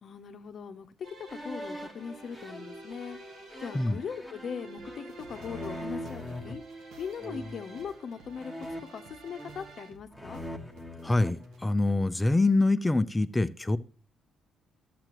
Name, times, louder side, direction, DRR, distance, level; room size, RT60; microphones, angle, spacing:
voice 1, 0.0-3.2 3.6-6.6 7.0-8.5 8.9-10.4, left 6 dB, 55° left, 8 dB, 0.8 m, -40 dB
sound 1, 1.0-9.9, right 2 dB, 70° right, 3.8 m, -49 dB
sound 2, 1.3-6.5 7.2-7.7 8.4-9.8 10.1-12.1, equal, 10° right, 1.4 m, -42 dB
sound 3, 4.8-11.6, right 4 dB, 90° right, 1.2 m, -57 dB
voice 2, 11.0-13.8, left 2 dB, 15° left, 11 dB, 0.5 m, -25 dB
11.5 x 7.7 x 3.0 m, 0.39 s
cardioid pair, 90°, 0 cm